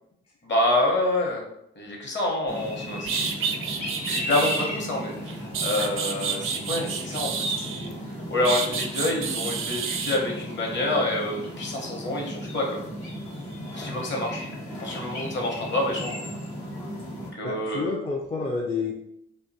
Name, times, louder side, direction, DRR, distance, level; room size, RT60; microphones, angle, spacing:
voice 1, 0.4-1.5 1.8-3.6 4.0-7.9 8.3-12.8 13.7-14.4 14.8-16.3 17.3-17.9, left 1 dB, 40° left, 0 dB, 0.9 m, -27 dB
sound 1, 2.5-17.3, equal, 75° left, 1.0 m, -35 dB
sound 2, 2.7-2.8 3.1-4.7 5.3-7.9 8.4-10.2, right 6 dB, 45° right, 0.4 m, -29 dB
voice 2, 17.4-18.9, left 4 dB, 20° left, -1 dB, 0.4 m, -29 dB
2.6 x 2.3 x 2.6 m, 0.78 s
hypercardioid pair, 50°, 30 cm